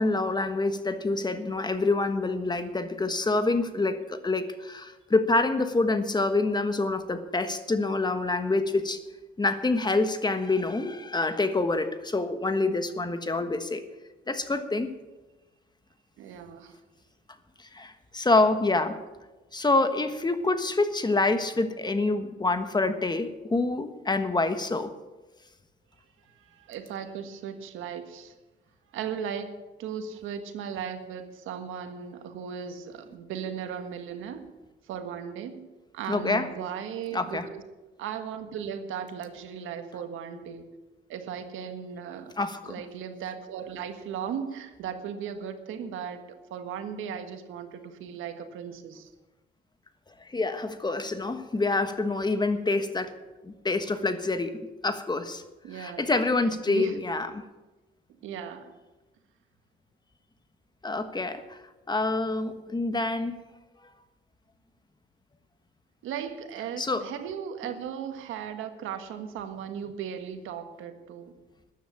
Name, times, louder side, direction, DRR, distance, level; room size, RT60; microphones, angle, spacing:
voice 1, 0.0-9.0 9.4-13.8 14.3-15.0 17.6-19.0 19.5-24.9 36.1-36.5 37.1-37.5 42.4-42.7 50.2-53.1 53.4-55.4 55.7-57.4 60.8-61.6 61.9-63.4 66.8-67.1, left 3 dB, 20° left, 9 dB, 1.3 m, -27 dB
voice 2, 16.2-16.8 26.3-28.3 28.9-34.5 34.9-37.6 38.0-40.6 41.1-42.3 42.6-46.2 46.5-49.1 55.6-56.0 56.7-57.0 58.2-58.7 66.0-71.3, right 8 dB, 90° right, 7 dB, 1.6 m, -37 dB
13.5 x 10.0 x 7.3 m, 1.1 s
cardioid pair, 90°, 20 cm